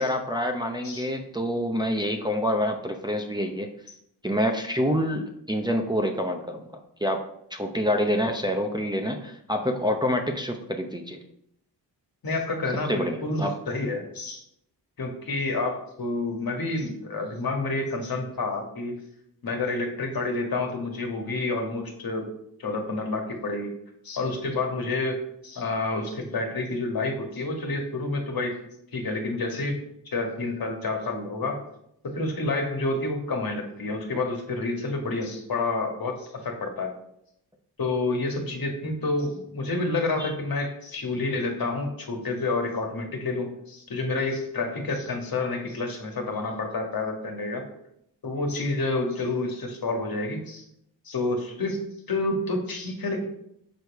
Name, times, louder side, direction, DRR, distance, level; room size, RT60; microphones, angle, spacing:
voice 1, 0.0-3.7 4.2-6.6 7.0-7.2 7.5-11.2 12.9-13.5 40.2-40.3, equal, 10° right, 2 dB, 0.7 m, -27 dB
voice 2, 12.2-14.4 15.0-19.0 19.4-22.3 22.6-23.7 24.0-28.6 28.9-31.6 32.0-36.9 37.8-47.6 48.2-50.6 51.0-53.3, left 2 dB, 55° left, 3 dB, 1.6 m, -29 dB
6.3 x 5.1 x 4.7 m, 0.75 s
cardioid pair, 80°, 42 cm